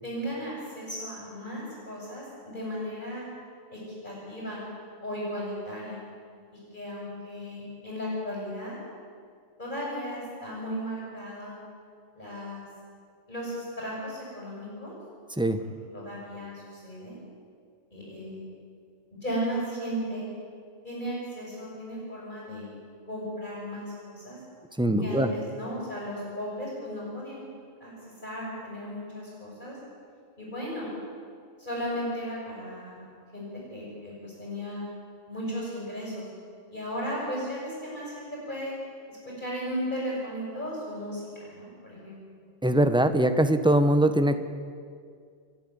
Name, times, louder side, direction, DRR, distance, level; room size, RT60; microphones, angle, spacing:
voice 1, 0.0-3.3 3.7-4.6 5.0-6.0 6.5-8.8 9.6-11.6 12.1-12.6 13.3-14.9 15.9-17.2 17.9-18.5 19.2-20.3 20.8-22.7 23.0-24.4 25.0-27.4 27.8-27.9 28.2-29.8 30.4-30.9 31.6-33.1 33.3-34.8 35.3-36.3 36.7-38.7 39.1-42.2, equal, 35° left, -5 dB, 7.9 m, -35 dB
voice 2, 24.8-25.3 42.6-44.4, right 1 dB, 5° right, 8 dB, 1.0 m, -22 dB
30.0 x 11.0 x 9.6 m, 2.1 s
omnidirectional pair, 1.4 m